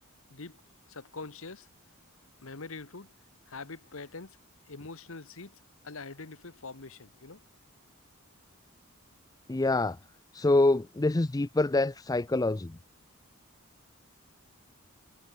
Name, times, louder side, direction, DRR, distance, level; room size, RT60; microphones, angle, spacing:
voice 1, 0.9-1.7 2.4-3.1 3.5-4.4 4.7-5.5 5.8-7.4, left 3 dB, 70° left, 1.4 m, -43 dB
voice 2, 9.5-10.0 10.3-12.8, left 2 dB, 15° left, 0.5 m, -26 dB
head